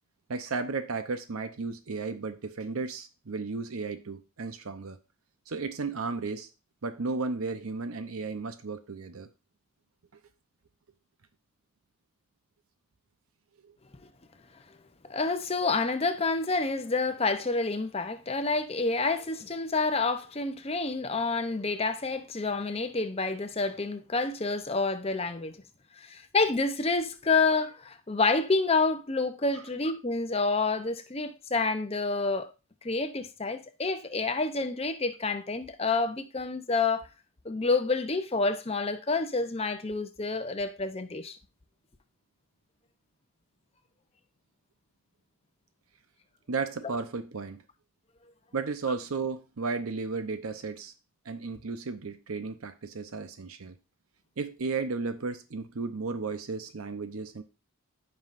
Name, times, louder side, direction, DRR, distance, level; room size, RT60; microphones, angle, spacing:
voice 1, 0.3-5.0 5.5-6.5 6.8-9.3 10.1-10.2 13.6-13.8 46.5-47.6 48.5-50.9 51.2-53.7 54.4-57.4, right 4 dB, 90° right, 0.7 m, -34 dB
voice 2, 15.0-25.6 26.0-32.5 32.8-37.1 37.4-41.4, left 3 dB, 30° left, 0.7 m, -28 dB
15.5 x 5.5 x 2.6 m
head